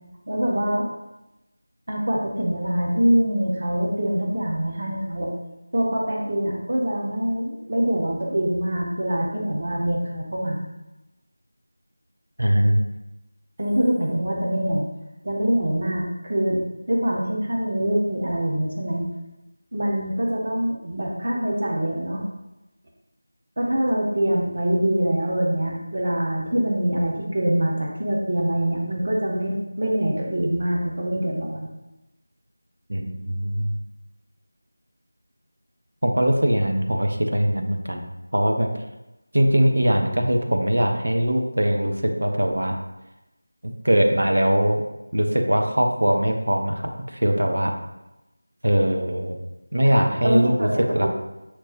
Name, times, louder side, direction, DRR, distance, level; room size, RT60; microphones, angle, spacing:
voice 1, 0.3-0.9 1.9-5.3 5.7-10.6 13.6-14.9 15.2-19.1 19.7-22.2 23.6-31.7 49.9-51.1, right 1 dB, 45° right, -1 dB, 0.8 m, -24 dB
voice 2, 12.4-12.8 32.9-33.8 36.0-38.7 39.3-42.7 43.6-44.8 45.1-47.7 48.6-49.4 49.7-51.1, equal, 75° right, 3 dB, 0.7 m, -21 dB
6.1 x 2.9 x 2.8 m, 0.97 s
figure-of-eight pair, 175°, 0 cm